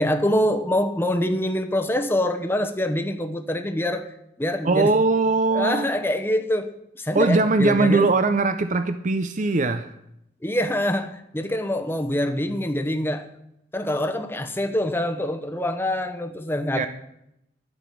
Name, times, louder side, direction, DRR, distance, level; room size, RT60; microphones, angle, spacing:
voice 1, 0.0-4.9 5.5-8.1 10.4-13.3 13.7-16.9, left 1 dB, 10° left, 6 dB, 0.9 m, -25 dB
voice 2, 4.6-5.9 7.1-9.9 16.7-16.9, right 3 dB, 40° right, 10 dB, 0.5 m, -20 dB
11.5 x 6.0 x 8.4 m, 0.79 s
head